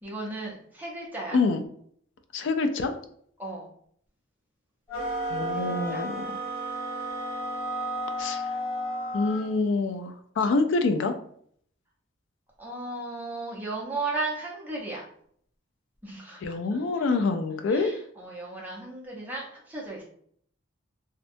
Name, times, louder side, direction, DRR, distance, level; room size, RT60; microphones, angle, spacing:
voice 1, 0.0-1.4 3.4-3.6 5.5-6.0 12.6-15.0 16.0-17.0 17.7-20.0, right 2 dB, 10° right, -4 dB, 0.5 m, -35 dB
voice 2, 2.3-2.9 5.3-6.2 8.2-8.4 9.1-11.1 16.4-17.9, left 3 dB, 65° left, 8 dB, 0.3 m, -26 dB
sound 1, 4.9-9.5, right 1 dB, 20° left, 1.2 m, -32 dB
2.6 x 2.1 x 2.5 m, 0.63 s
head